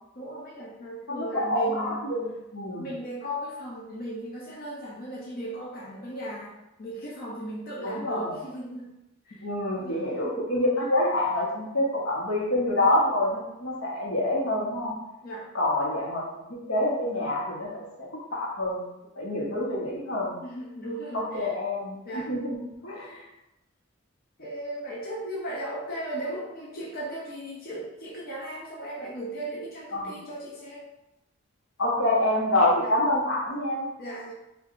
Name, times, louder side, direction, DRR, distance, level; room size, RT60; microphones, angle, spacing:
voice 1, 0.1-2.0 2.8-8.9 9.2-9.5 9.8-10.0 15.2-15.5 20.4-21.5 22.0-22.3 22.9-23.3 24.4-30.9 32.8-32.9 34.0-34.3, right 1 dB, 50° left, -4 dB, 0.6 m, -36 dB
voice 2, 1.1-2.9 7.8-8.4 9.4-14.9 15.5-16.2 16.5-18.9 19.1-20.4 21.1-22.6 22.8-23.2 29.9-30.1 31.8-33.9, left 1 dB, 85° left, -4 dB, 1.2 m, -27 dB
4.5 x 2.5 x 2.6 m, 0.94 s
head